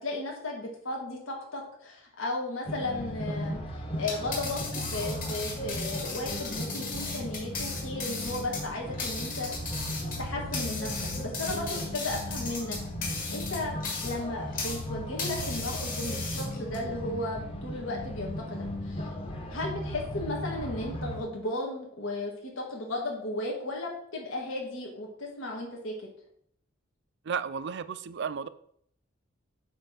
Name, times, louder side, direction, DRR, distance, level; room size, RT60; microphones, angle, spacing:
voice 1, 0.0-9.5 10.2-10.9 11.2-12.8 13.0-19.1 19.5-26.1, left 2 dB, 80° left, -1 dB, 1.7 m, -35 dB
sound 1, 2.6-21.2, equal, 30° left, 1.1 m, -36 dB
sound 2, 4.0-14.8 15.2-16.8, left 4 dB, 45° left, 2.3 m, -36 dB
voice 2, 27.2-28.5, right 6 dB, 60° right, 14 dB, 0.4 m, -33 dB
8.7 x 3.3 x 5.8 m, 0.67 s
head